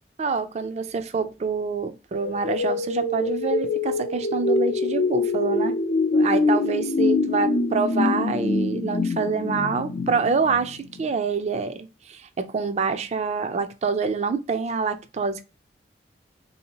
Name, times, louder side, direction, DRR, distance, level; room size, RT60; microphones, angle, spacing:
voice 1, 0.2-5.8 6.1-15.4, right 5 dB, 40° right, 0.4 m, -26 dB
sound 1, 2.1-11.1, left 3 dB, 70° left, 0.5 m, -24 dB
3.6 x 2.7 x 2.7 m
head